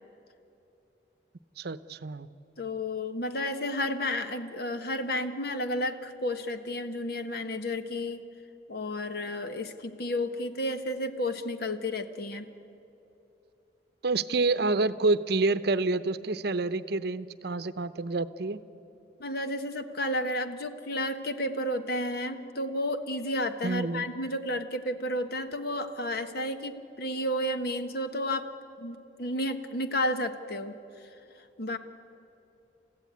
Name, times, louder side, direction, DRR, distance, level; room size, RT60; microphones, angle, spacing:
voice 1, 1.6-2.3 14.0-18.6 23.6-24.0, right 3 dB, 65° right, 13 dB, 0.7 m, -28 dB
voice 2, 2.6-8.2 8.7-12.5 19.2-28.5 28.8-30.8 31.6-31.8, left 1 dB, 60° left, 8 dB, 1.3 m, -32 dB
30.0 x 15.0 x 9.5 m, 2.9 s
head